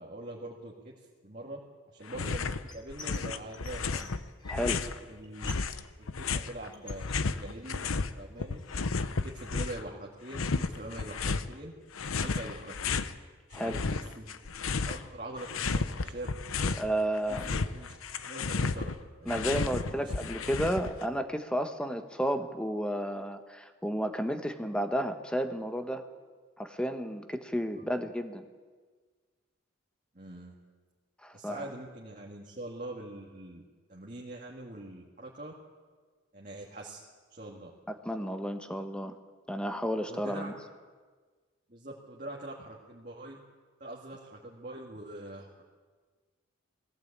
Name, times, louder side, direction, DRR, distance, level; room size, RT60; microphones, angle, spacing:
voice 1, 0.0-1.6 1.9-4.1 5.1-5.5 6.0-7.1 7.3-7.9 8.1-8.6 9.2-11.7 12.1-13.0 13.5-14.4 14.8-16.3 16.6-16.8 17.3-17.9 18.3-18.9 19.2-20.1 27.7-27.8 30.1-30.5 31.3-33.6 33.9-35.5 36.3-37.0 37.3-37.7 40.1-40.5 41.7-43.4 43.8-45.6, right 1 dB, 40° right, -2 dB, 2.1 m, -43 dB
sound 1, 2.1-2.6 2.9-5.0 5.4-8.1 8.4-9.9 10.3-11.5 11.9-13.1 13.5-15.1 15.4-16.9 17.2-21.0, left 4 dB, 90° left, 0.8 m, -33 dB
sound 2, 2.7-3.2 3.5-4.9 5.2-5.7 6.0-7.8 8.2-9.0, left 2 dB, 20° left, 2.9 m, -49 dB
voice 2, 4.5-4.8 13.5-13.8 16.8-17.5 19.3-26.0 26.6-28.5 31.2-31.7 37.9-39.1 39.5-40.5, equal, 5° left, 8 dB, 1.0 m, -32 dB
19.5 x 15.5 x 8.6 m, 1.5 s
head